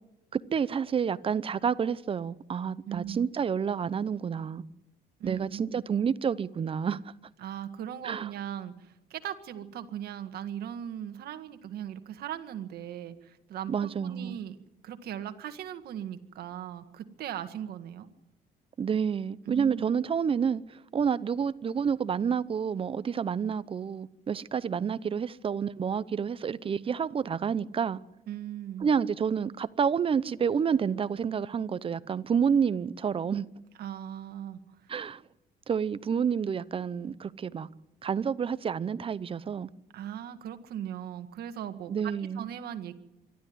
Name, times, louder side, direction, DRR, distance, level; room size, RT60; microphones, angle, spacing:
voice 1, 0.3-4.6 5.2-7.0 8.0-8.3 13.7-14.4 18.8-28.0 28.8-33.5 34.9-35.2 35.7-37.7 38.0-39.7 41.9-42.5, right 7 dB, 35° right, 0.8 m, -29 dB
voice 2, 2.8-3.3 5.2-5.7 7.4-14.6 14.8-18.1 19.4-19.8 28.3-28.9 33.8-34.6 39.9-42.9, right 10 dB, 65° right, 1.8 m, -39 dB
25.0 x 12.5 x 9.5 m
cardioid pair, 110°, 17 cm